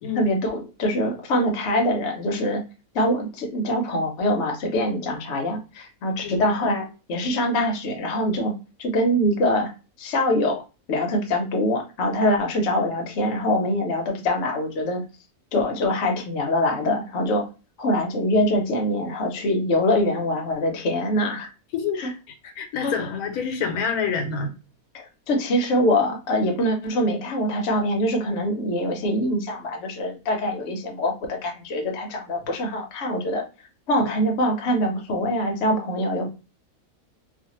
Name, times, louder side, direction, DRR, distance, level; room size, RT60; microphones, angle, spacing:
voice 1, 0.1-2.6 2.9-8.5 8.8-9.7 10.0-10.6 10.9-15.0 15.5-17.5 17.8-21.5 22.0-22.1 22.8-23.1 24.9-33.4 33.9-36.3, left 1 dB, 60° left, 0.9 m, -24 dB
voice 2, 22.6-24.5 34.0-34.1, left 6 dB, 85° left, 1.1 m, -27 dB
2.5 x 2.5 x 2.9 m
omnidirectional pair, 1.5 m